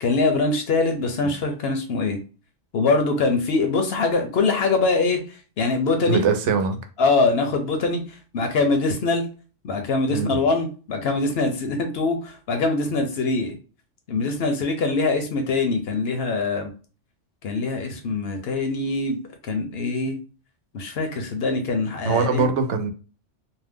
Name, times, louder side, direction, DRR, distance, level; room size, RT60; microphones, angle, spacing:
voice 1, 0.0-2.2 2.7-5.2 5.6-6.2 7.0-8.0 8.3-9.3 9.6-13.6 14.1-16.7 17.4-19.2 19.4-20.2 20.7-22.5, left 3 dB, 65° left, 5 dB, 0.8 m, -23 dB
voice 2, 6.1-6.8 10.1-10.3 22.1-22.9, right 4 dB, 75° right, 7 dB, 0.9 m, -22 dB
2.7 x 2.1 x 3.5 m, 0.36 s
omnidirectional pair, 1.2 m